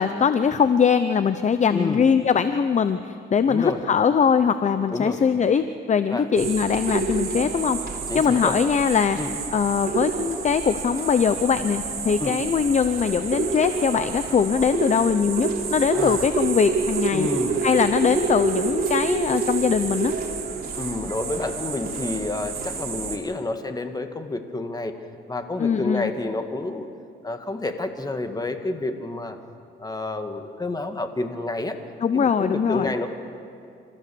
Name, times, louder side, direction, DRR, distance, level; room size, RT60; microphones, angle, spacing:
voice 1, 0.0-7.8 8.1-9.2 9.5-17.3 17.6-20.1 25.6-26.1 32.0-32.9, left 6 dB, 35° left, 11 dB, 0.7 m, -21 dB
voice 2, 1.7-2.0 3.5-3.8 4.9-5.2 6.1-6.3 8.1-8.6 9.1-9.3 12.2-12.4 15.9-16.3 17.1-17.6 20.8-24.9 25.3-26.9 27.2-29.4 29.8-31.8 32.1-33.1, left 2 dB, 20° left, 6 dB, 1.8 m, -29 dB
sound 1, 6.4-23.2, right 5 dB, 50° right, 3.2 m, -28 dB
27.0 x 15.0 x 7.0 m, 2.4 s
cardioid pair, 90°, 20 cm